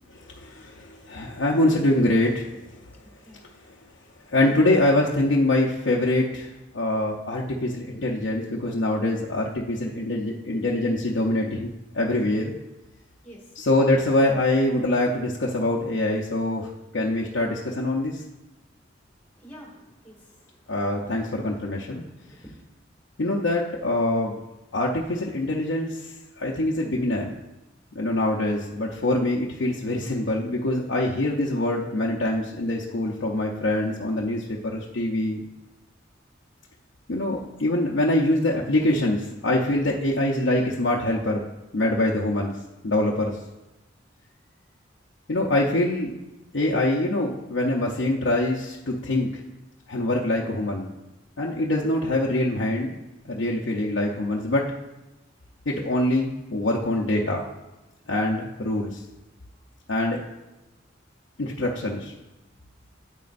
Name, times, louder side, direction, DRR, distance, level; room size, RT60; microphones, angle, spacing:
voice 1, 0.3-2.6 4.3-12.5 13.6-18.2 20.7-22.0 23.2-24.3 24.7-26.1 26.4-27.3 27.9-35.4 37.1-41.4 41.7-42.5 42.8-43.4 45.3-46.1 46.5-49.4 49.9-50.9 51.4-53.0 53.2-54.7 55.7-57.4 58.1-59.0 59.9-60.2 61.4-62.1, left 1 dB, 80° left, -3 dB, 0.7 m, -24 dB
voice 2, 13.2-13.6 19.3-20.8 21.7-22.5, equal, 10° left, -3 dB, 1.9 m, -49 dB
9.3 x 8.3 x 2.6 m, 1.0 s
head